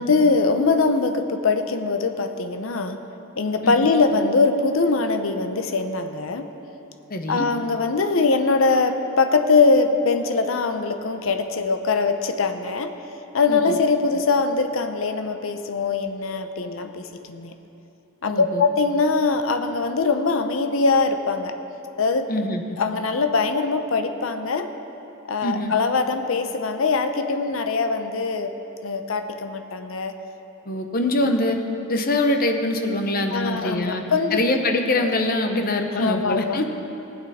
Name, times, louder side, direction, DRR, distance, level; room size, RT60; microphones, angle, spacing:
voice 1, 0.0-3.0 3.4-6.5 7.3-12.9 13.3-17.5 18.2-21.5 22.0-22.3 22.8-24.7 25.3-28.5 28.8-30.1 33.3-34.4 35.0-35.1 36.0-36.6, left 4 dB, 75° left, 7 dB, 0.7 m, -22 dB
voice 2, 7.1-7.5 13.5-13.8 18.2-18.6 22.3-22.6 25.4-25.7 30.7-31.6 31.9-34.0 34.3-36.7, left 1 dB, 45° left, 5 dB, 0.9 m, -23 dB
18.5 x 8.9 x 4.2 m, 2.9 s
head